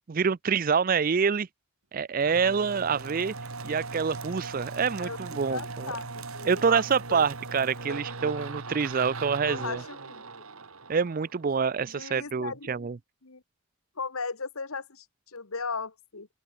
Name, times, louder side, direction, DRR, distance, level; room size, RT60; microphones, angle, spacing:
voice 1, 0.1-1.5 1.9-3.3 3.6-5.9 6.5-9.8 10.9-13.0, right 6 dB, 40° right, 0.4 m, -26 dB
sound 1, 2.2-11.8, right 3 dB, 85° right, 2.3 m, -39 dB
voice 2, 5.0-6.8 7.1-7.3 7.9-8.0 9.4-10.4 11.8-12.9 13.2-13.4 14.0-16.3, left 4 dB, 85° left, 1.7 m, -37 dB
open air
head